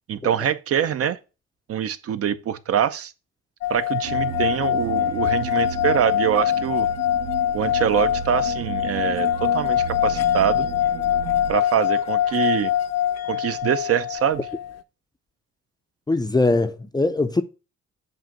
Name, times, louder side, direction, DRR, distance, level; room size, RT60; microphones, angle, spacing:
voice 1, 0.1-1.2 1.7-3.1 3.7-6.9 7.5-10.7 11.5-12.7 13.3-14.4, right 9 dB, 50° right, 0.6 m, -24 dB
sound 1, 3.6-14.8, left 11 dB, 60° left, 0.6 m, -24 dB
sound 2, 4.0-11.5, right 6 dB, 85° right, 0.8 m, -34 dB
voice 2, 16.1-17.4, left 2 dB, 15° left, 0.4 m, -21 dB
7.7 x 2.6 x 5.8 m
cardioid pair, 90°, 30 cm